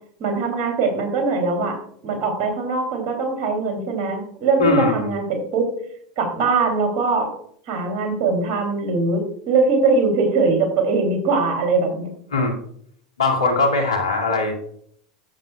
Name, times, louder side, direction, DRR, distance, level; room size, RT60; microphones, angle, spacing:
voice 1, 0.2-1.8 2.0-5.7 6.2-7.3 7.7-12.1, right 4 dB, 55° right, 4 dB, 2.8 m, -21 dB
voice 2, 4.6-5.1 12.3-12.6 13.2-14.6, left 3 dB, 90° left, 0 dB, 2.2 m, -20 dB
14.0 x 7.6 x 2.3 m, 0.65 s
hypercardioid pair, 90°, 3 cm